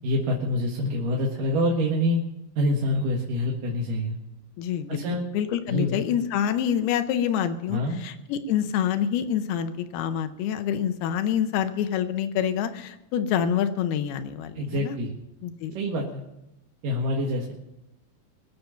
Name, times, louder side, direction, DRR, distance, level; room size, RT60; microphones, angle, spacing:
voice 1, 0.0-2.2 2.6-4.2 4.9-5.2 5.7-6.0 7.7-8.0 14.5-15.1 15.7-16.2 16.8-17.5, left 1 dB, 65° right, -2 dB, 3.1 m, -26 dB
voice 2, 4.6-5.0 5.3-15.0 15.4-15.7, left 9 dB, 85° left, 9 dB, 2.8 m, -27 dB
23.0 x 8.1 x 5.7 m, 0.89 s
omnidirectional pair, 4.5 m